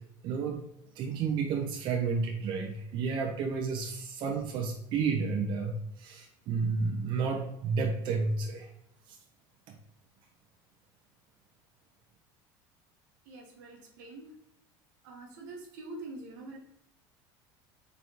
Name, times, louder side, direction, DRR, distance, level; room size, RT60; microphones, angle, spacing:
voice 1, 0.2-0.6 1.0-8.7 9.1-9.2, right 5 dB, 55° right, 2 dB, 0.6 m, -31 dB
voice 2, 13.3-14.3 15.0-16.6, right 2 dB, 90° right, 1 dB, 1.2 m, -45 dB
4.1 x 3.4 x 2.9 m, 0.80 s
supercardioid pair, 120°, 10 cm